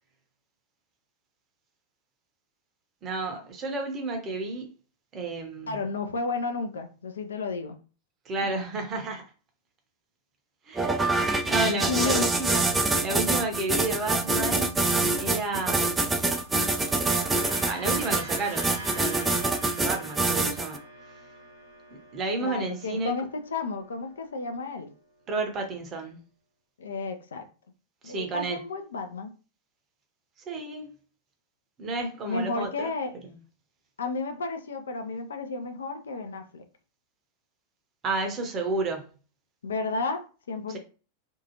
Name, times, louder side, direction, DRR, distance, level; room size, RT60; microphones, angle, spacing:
voice 1, 3.0-4.7 5.1-5.9 8.2-9.2 10.6-11.1 11.4-12.6 13.0-14.8 15.2-16.3 17.6-19.4 19.8-20.8 21.9-23.2 25.3-26.2 28.0-28.6 30.5-30.9 31.8-32.9 33.2-33.4 38.0-39.2 40.7-40.8, right 3 dB, 30° right, 0.8 m, -31 dB
voice 2, 5.7-7.8 8.4-8.5 11.6-12.8 22.4-24.9 26.8-27.5 28.0-29.3 32.2-33.1 34.0-36.7 39.6-40.8, left 3 dB, 70° left, 0.5 m, -32 dB
sound 1, 10.7-20.8, right 3 dB, 10° right, 0.4 m, -25 dB
sound 2, 16.3-24.7, right 1 dB, 85° right, 0.9 m, -45 dB
2.7 x 2.3 x 2.9 m
figure-of-eight pair, 90°, 0 cm